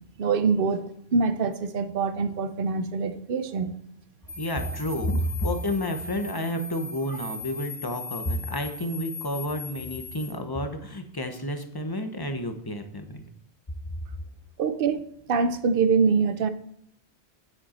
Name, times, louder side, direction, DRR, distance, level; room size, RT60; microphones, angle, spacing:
voice 1, 0.2-3.7 14.6-15.0 15.3-16.5, right 5 dB, 55° right, 0.9 m, -24 dB
sound 1, 4.3-10.3, left 3 dB, ahead, 2.8 m, -39 dB
voice 2, 4.4-13.2, left 1 dB, 20° left, 1.0 m, -30 dB
9.9 x 7.7 x 4.3 m
omnidirectional pair, 1.1 m